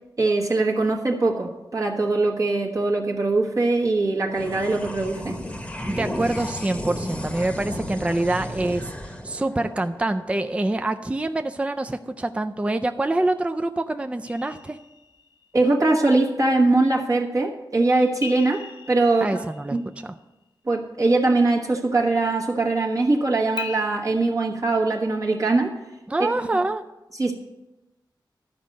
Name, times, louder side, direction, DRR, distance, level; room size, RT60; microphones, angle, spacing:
voice 1, 0.2-5.4 15.5-18.6 18.9-19.4 19.7-19.8 20.7-25.7 26.2-26.3 27.2-27.3, right 2 dB, 45° right, -1 dB, 1.2 m, -21 dB
sound 1, 4.3-11.0, left 1 dB, 15° left, 1.0 m, -33 dB
voice 2, 5.9-8.9 9.2-14.8 19.2-19.8 20.0-20.1 26.1-26.8, right 2 dB, 15° right, 7 dB, 0.4 m, -25 dB
sound 2, 14.2-15.6 18.2-20.2 23.6-23.9, left 6 dB, 70° left, 1.1 m, -38 dB
12.0 x 5.2 x 7.6 m, 1.0 s
wide cardioid pair, 120°, 8 cm